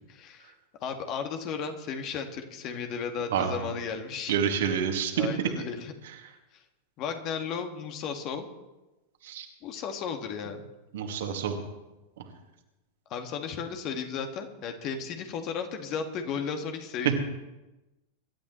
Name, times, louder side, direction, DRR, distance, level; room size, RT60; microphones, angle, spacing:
voice 1, 0.1-0.5 0.8-4.3 5.2-5.9 7.0-8.4 9.6-10.7 13.1-17.2, left 6 dB, 40° left, 5 dB, 2.0 m, -34 dB
voice 2, 4.3-5.3 9.2-9.5 10.9-11.6, right 8 dB, 60° right, 3 dB, 2.3 m, -28 dB
25.0 x 12.5 x 3.2 m, 1.0 s
figure-of-eight pair, 90°, 0 cm